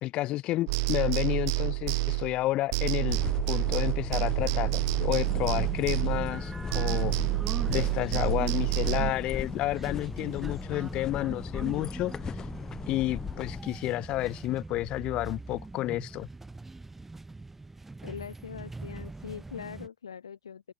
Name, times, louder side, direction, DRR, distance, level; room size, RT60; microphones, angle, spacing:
voice 1, 0.0-3.2 3.5-7.1 7.7-12.5 12.9-16.3, left 16 dB, 40° left, 1.2 m, -30 dB
sound 1, 0.7-6.4 6.7-9.1, right 29 dB, 50° right, 1.9 m, -28 dB
sound 2, 3.1-13.6, left 8 dB, 25° left, 0.7 m, -38 dB
sound 3, 5.2-19.9, right 3 dB, 10° right, 2.6 m, -41 dB
voice 2, 18.0-20.7, left 7 dB, 75° left, 1.6 m, -42 dB
figure-of-eight pair, 90°, 3 cm